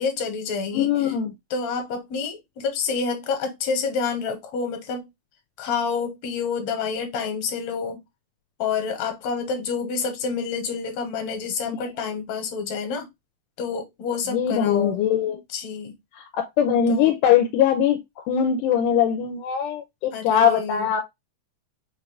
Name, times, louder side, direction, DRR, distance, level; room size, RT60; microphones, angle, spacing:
voice 1, 0.0-1.1 1.5-5.1 5.6-8.0 8.6-13.1 13.6-15.9 16.9-17.1 20.1-20.9, left 5 dB, 65° left, 2.1 m, -28 dB
voice 2, 0.7-1.3 11.7-11.8 14.3-15.4 16.2-21.0, left 8 dB, 80° left, 2.1 m, -21 dB
6.0 x 2.5 x 3.2 m
omnidirectional pair, 3.7 m